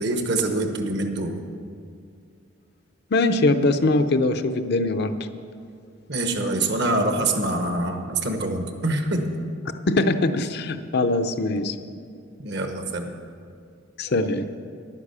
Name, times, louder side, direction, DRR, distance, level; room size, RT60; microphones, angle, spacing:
voice 1, 0.0-1.3 6.1-9.3 12.4-13.1, right 2 dB, 60° right, 5 dB, 1.1 m, -25 dB
voice 2, 3.1-5.3 9.9-11.8 14.0-14.5, left 2 dB, 55° left, 9 dB, 0.6 m, -22 dB
10.5 x 9.7 x 6.8 m, 2.3 s
head